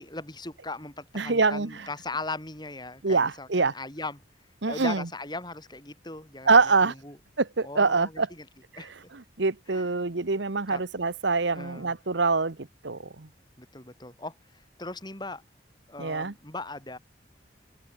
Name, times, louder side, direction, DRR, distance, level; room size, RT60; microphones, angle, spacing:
voice 1, 0.0-4.2 4.6-7.2 7.6-8.5 8.8-9.1 9.7-9.9 10.7-10.8 11.5-11.9 13.6-14.3 14.8-15.4 15.9-17.0, left 2 dB, 20° left, 4.7 m, -38 dB
voice 2, 1.1-1.9 3.0-3.7 4.6-5.1 6.4-6.9 7.4-8.3 8.7-12.6 12.8-13.3 16.0-16.3, right 4 dB, 70° right, 1.1 m, -25 dB
head